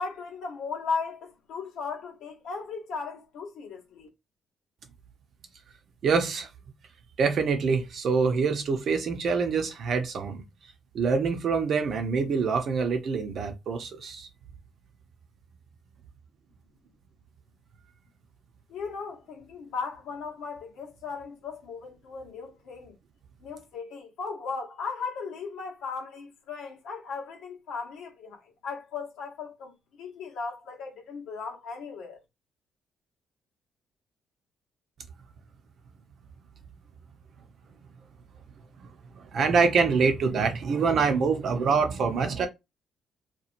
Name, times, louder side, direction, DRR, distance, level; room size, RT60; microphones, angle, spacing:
voice 1, 0.0-4.1 18.7-22.9 23.4-32.2, left 5 dB, 80° left, 0.9 m, -37 dB
voice 2, 6.0-6.5 7.2-10.4 10.9-14.3 38.8-38.9 39.1-42.5, right 5 dB, 60° right, 0.7 m, -25 dB
2.9 x 2.4 x 2.5 m
supercardioid pair, 70°, 0 cm